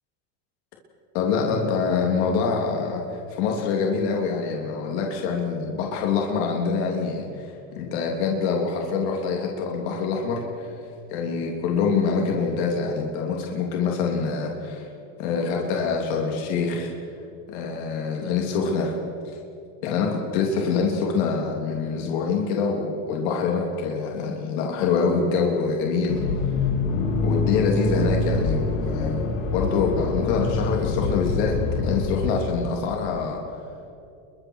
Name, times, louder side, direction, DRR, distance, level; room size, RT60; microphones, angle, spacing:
voice 1, 1.1-3.0 3.3-10.7 11.1-14.9 15.2-16.9 17.5-19.0 19.8-26.2 27.2-33.4, left 5 dB, 50° left, 0 dB, 3.3 m, -25 dB
Accelerating revving vroom, 26.1-32.3, left 3 dB, 70° left, 3.4 m, -25 dB
29.0 x 23.5 x 4.8 m, 2.6 s
supercardioid pair, 180°, 39 cm